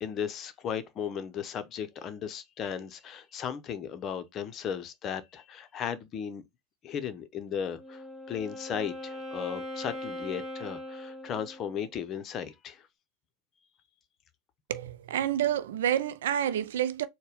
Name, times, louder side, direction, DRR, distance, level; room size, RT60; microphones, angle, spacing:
voice 1, 0.0-6.4 6.8-12.9, left 8 dB, 40° left, 0.7 m, -36 dB
Wind instrument woodwind instrument, 7.6-11.9, left 1 dB, 5° right, 2.0 m, -40 dB
voice 2, 14.7-17.1, right 10 dB, 75° right, 0.4 m, -28 dB
4.2 x 2.2 x 3.5 m
hypercardioid pair, 100°, 0 cm